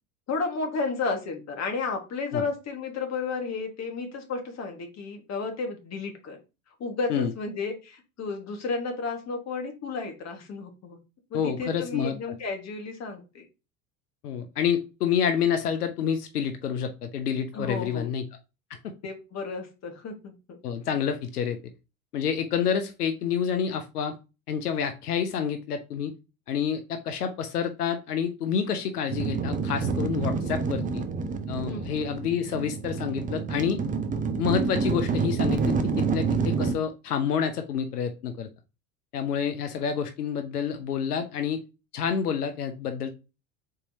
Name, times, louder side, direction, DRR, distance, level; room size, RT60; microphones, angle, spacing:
voice 1, 0.3-6.4 6.8-11.0 11.3-13.4 17.5-18.1 19.0-20.6 31.6-32.0, left 4 dB, 35° left, 4 dB, 1.5 m, -32 dB
voice 2, 11.3-12.2 14.2-18.2 18.8-18.9 20.6-21.6 22.1-24.1 24.5-26.1 26.5-31.0 31.5-33.8 34.4-38.5 39.1-41.6 41.9-43.1, left 7 dB, 90° left, 8 dB, 0.6 m, -28 dB
sound 1, 29.1-36.7, right 5 dB, 20° right, 0.5 m, -28 dB
4.1 x 3.7 x 2.7 m, 0.29 s
hypercardioid pair, 80°, 45 cm